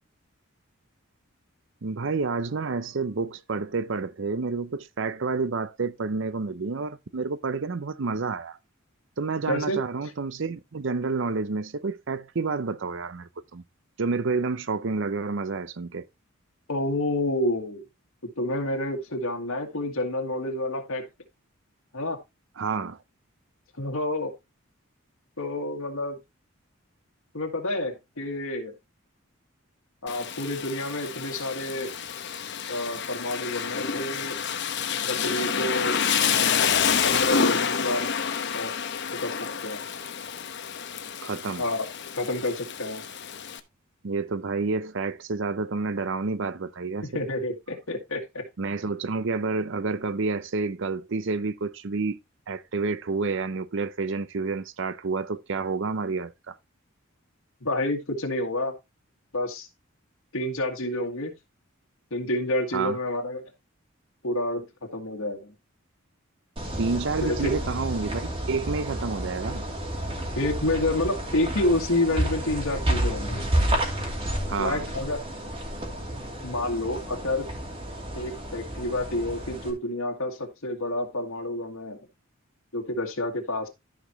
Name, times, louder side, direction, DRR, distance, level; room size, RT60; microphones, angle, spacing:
voice 1, 1.8-8.6 9.2-13.6 14.0-16.1 22.6-23.0 41.2-41.6 44.0-47.1 48.6-52.2 52.5-56.6 62.7-63.0 66.8-69.6 74.5-74.8, right 4 dB, 60° right, 0.6 m, -29 dB
voice 2, 9.5-9.8 16.7-17.8 18.2-21.1 21.9-22.2 23.8-24.3 25.4-26.2 27.3-28.7 30.0-31.9 32.7-34.4 35.0-36.0 37.0-38.1 38.5-38.7 39.1-39.8 41.6-41.9 42.1-43.0 47.0-48.5 57.6-58.7 59.3-59.7 60.3-61.3 62.1-63.5 64.2-65.5 67.2-67.5 70.4-73.4 74.6-75.2 76.4-77.5 78.1-82.0 82.7-83.7, left 1 dB, 80° left, 1.9 m, -29 dB
Rain, 30.1-43.6, left 6 dB, 55° left, 0.9 m, -28 dB
sound 1, 66.6-79.7, right 1 dB, 25° right, 2.8 m, -30 dB
14.0 x 5.2 x 3.0 m
head